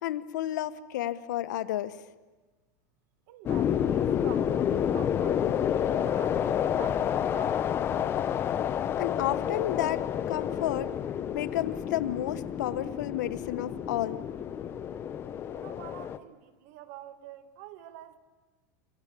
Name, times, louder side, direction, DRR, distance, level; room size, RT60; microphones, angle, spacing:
voice 1, 0.0-2.0 9.0-10.9 11.3-14.2, left 13 dB, 85° left, 12 dB, 1.3 m, -31 dB
voice 2, 3.3-5.5 5.8-7.7 15.5-18.2, right 13 dB, 60° right, 10 dB, 2.0 m, -47 dB
sound 1, 3.5-16.2, left 9 dB, 25° left, 0.8 m, -29 dB
27.5 x 24.0 x 8.5 m, 1.3 s
supercardioid pair, 155°, 9 cm